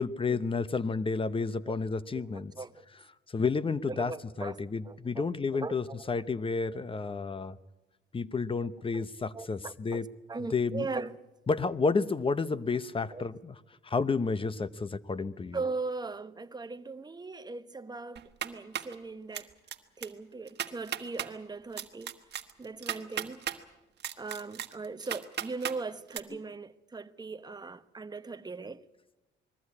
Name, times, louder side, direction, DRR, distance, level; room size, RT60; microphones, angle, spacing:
voice 1, 0.0-2.5 3.3-4.1 4.4-7.6 8.1-10.1 10.4-10.9 11.5-15.6 26.3-26.4, left 4 dB, 25° left, 0.8 m, -31 dB
voice 2, 2.1-2.9 3.9-4.6 4.8-5.3 5.6-6.0 8.9-9.0 9.3-10.0 10.3-11.2 13.1-13.2 15.5-19.5 20.0-22.1 22.6-23.4 24.2-28.8, right 3 dB, 20° right, 0.9 m, -39 dB
sound 1, 18.2-19.0 19.3-19.8 20.0-20.1 20.5-21.3 21.8-23.6 24.0-25.8 26.1-26.2, right 10 dB, 60° right, 1.3 m, -35 dB
21.0 x 14.5 x 9.7 m
cardioid pair, 90°, 20 cm